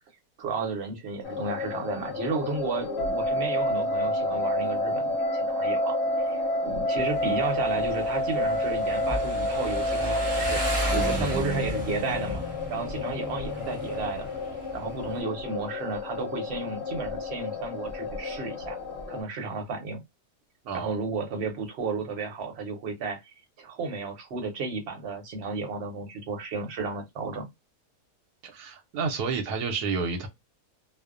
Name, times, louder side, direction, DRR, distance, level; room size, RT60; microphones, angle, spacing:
voice 1, 0.4-6.0 6.3-6.4 6.6-10.6 10.9-12.4 12.7-14.3 14.7-18.8 19.1-20.0 20.7-23.2 23.6-27.5, right 4 dB, 50° right, 0.9 m, -33 dB
sound 1, 1.2-19.2, left 6 dB, 55° left, 0.9 m, -34 dB
sound 2, 3.0-11.2, equal, 80° left, 1.1 m, -28 dB
Motorcycle, 7.0-15.2, equal, 20° right, 0.7 m, -34 dB
voice 2, 11.1-11.4 20.6-21.0 28.4-30.3, right 4 dB, 85° right, 1.1 m, -30 dB
2.6 x 2.0 x 2.4 m
omnidirectional pair, 1.6 m